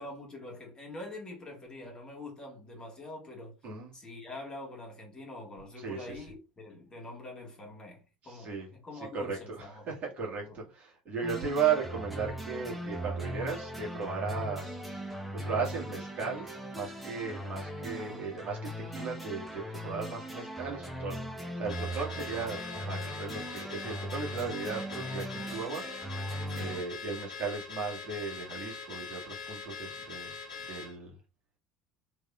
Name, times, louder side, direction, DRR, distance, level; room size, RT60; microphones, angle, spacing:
voice 1, 0.0-3.6 3.9-8.5 8.8-9.9 10.4-10.6 18.0-18.3 26.5-26.8 30.1-30.2, left 2 dB, 20° left, 1.6 m, -45 dB
voice 2, 3.6-3.9 5.8-6.3 8.2-22.6 22.9-26.2 26.5-30.4 30.7-31.2, right 5 dB, 40° right, 1.7 m, -36 dB
sound 1, 11.2-26.8, right 1 dB, ahead, 0.9 m, -39 dB
Car / Alarm, 21.7-30.9, left 5 dB, 80° left, 1.0 m, -42 dB
3.5 x 3.3 x 2.4 m
figure-of-eight pair, 65°, 4 cm